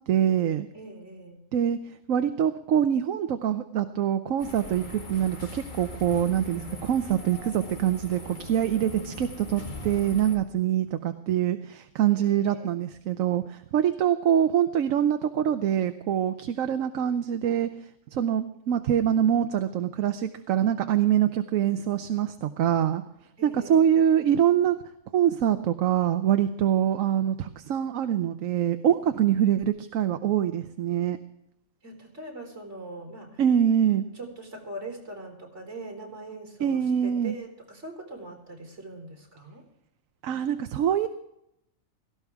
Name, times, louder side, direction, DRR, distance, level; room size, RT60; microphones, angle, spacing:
voice 1, 0.1-0.7 1.5-1.8 2.1-17.7 18.1-23.0 23.4-24.8 25.1-31.2 33.4-34.1 36.6-37.3 40.2-41.1, right 10 dB, 75° right, 9 dB, 1.1 m, -24 dB
voice 2, 0.7-1.4 12.2-12.7 23.4-24.3 31.8-33.4 34.1-39.6, right 2 dB, 60° right, -1 dB, 4.4 m, -42 dB
sound 1, 4.4-10.4, left 3 dB, 35° left, 1.9 m, -40 dB
17.5 x 15.0 x 3.6 m, 0.80 s
omnidirectional pair, 1.4 m